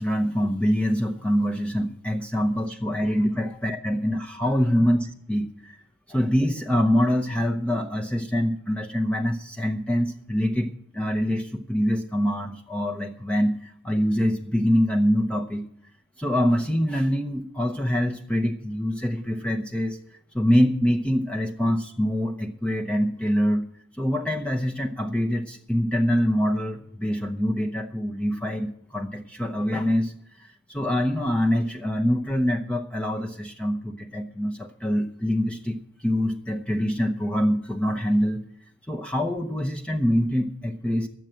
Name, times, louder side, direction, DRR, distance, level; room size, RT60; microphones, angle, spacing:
voice 1, 0.0-5.8 6.1-15.7 16.2-20.0 20.3-23.6 24.0-38.4 38.9-41.1, equal, 5° left, 2 dB, 0.7 m, -25 dB
12.0 x 7.6 x 8.9 m, 0.68 s
head